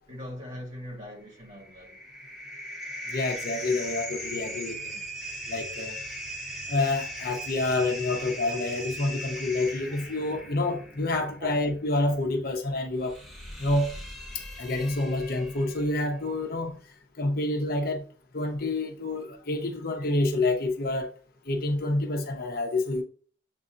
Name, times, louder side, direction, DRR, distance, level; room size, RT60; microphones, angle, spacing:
voice 1, 0.1-2.0 11.4-11.5, equal, 40° right, 1.5 m, -41 dB
sound 1, 1.4-16.0, equal, ahead, 0.9 m, -39 dB
voice 2, 3.1-5.0 5.5-6.0 6.7-13.2 13.6-13.9 14.3-16.8 17.2-18.0 18.3-21.1 21.5-23.0, left 2 dB, 50° left, 0.7 m, -28 dB
7.3 x 2.7 x 2.4 m
head